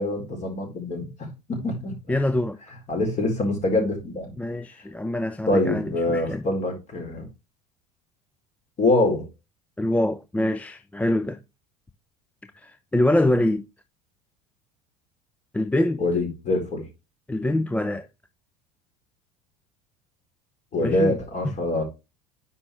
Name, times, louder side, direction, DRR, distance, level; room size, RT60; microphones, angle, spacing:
voice 1, 0.0-2.0 2.9-4.3 5.5-7.3 8.8-9.3 16.0-16.8 20.7-21.8, left 2 dB, 35° left, 4.2 m, -24 dB
voice 2, 2.1-2.6 4.4-6.4 9.8-11.4 12.6-13.7 15.5-16.0 17.3-18.1 20.8-21.2 21.4-21.5, left 1 dB, 5° left, 0.5 m, -24 dB
9.7 x 5.7 x 3.1 m
figure-of-eight pair, 70°, 20 cm